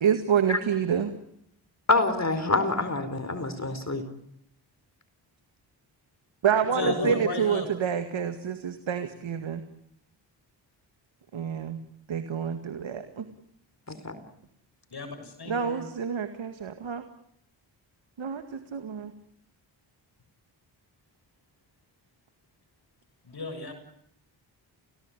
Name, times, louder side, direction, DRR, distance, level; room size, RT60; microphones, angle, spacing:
voice 1, 0.0-1.1 6.4-9.6 11.3-11.8 12.1-13.3 15.5-17.0 18.2-19.1, right 7 dB, 70° right, 8 dB, 2.1 m, -28 dB
voice 2, 1.9-4.0 6.8-7.1 13.9-14.2, left 2 dB, 35° left, 10 dB, 4.4 m, -26 dB
voice 3, 6.7-7.7 14.9-15.8 23.2-23.7, left 3 dB, 50° left, 6 dB, 7.3 m, -34 dB
29.0 x 18.0 x 10.0 m, 0.74 s
cardioid pair, 45°, 48 cm